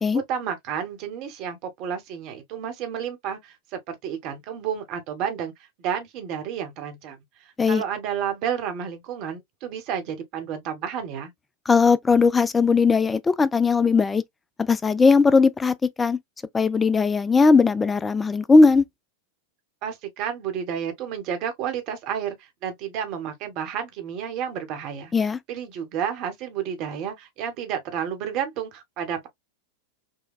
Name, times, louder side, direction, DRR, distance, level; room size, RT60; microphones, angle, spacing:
voice 1, 0.1-5.5 5.8-7.2 7.4-11.3 19.8-25.1 25.5-29.3, right 8 dB, 40° right, 1.0 m, -31 dB
voice 2, 11.7-14.2 14.6-16.2 16.5-18.8 25.1-25.4, left 4 dB, 15° left, 0.4 m, -18 dB
5.5 x 2.2 x 2.2 m
figure-of-eight pair, 90°, 0 cm